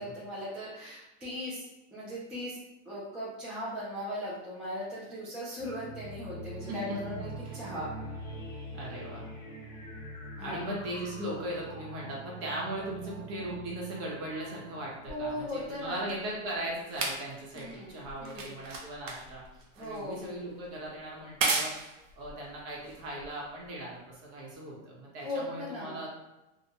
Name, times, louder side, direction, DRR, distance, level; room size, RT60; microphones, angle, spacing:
voice 1, 0.0-1.7 1.9-2.6 2.9-7.9 10.4-10.6 15.1-16.1 17.5-18.5 19.8-20.2 25.2-26.0, equal, 5° right, -9 dB, 0.3 m, -38 dB
sound 1, 5.6-15.8, right 1 dB, 25° left, 0.8 m, -44 dB
voice 2, 8.7-9.3 10.4-19.4 19.8-26.1, right 1 dB, 40° right, -3 dB, 0.9 m, -38 dB
sound 2, 15.1-23.7 24.5-24.6, right 3 dB, 85° right, 0.7 m, -37 dB
2.3 x 2.1 x 2.8 m, 0.98 s
supercardioid pair, 130°, 37 cm